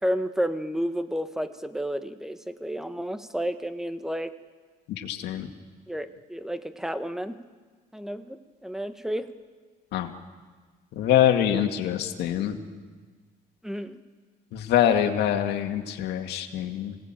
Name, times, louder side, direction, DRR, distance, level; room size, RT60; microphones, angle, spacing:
voice 1, 0.0-4.3 5.9-7.4 7.9-9.3 13.6-14.0, equal, 5° right, 10 dB, 1.2 m, -31 dB
voice 2, 5.0-5.5 9.9-10.1 10.9-12.6 14.5-17.0, left 10 dB, 80° left, 5 dB, 2.1 m, -24 dB
25.5 x 18.0 x 9.0 m, 1.5 s
cardioid pair, 110°, 17 cm